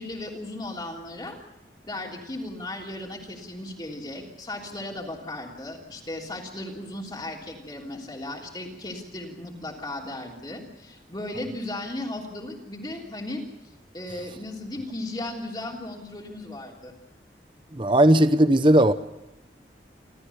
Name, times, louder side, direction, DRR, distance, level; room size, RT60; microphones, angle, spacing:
voice 1, 0.0-1.4 1.8-13.4 13.9-16.9, left 1 dB, 25° left, -1 dB, 3.3 m, -36 dB
voice 2, 17.7-18.9, right 1 dB, 25° right, 12 dB, 0.8 m, -17 dB
28.5 x 13.5 x 6.9 m, 0.96 s
head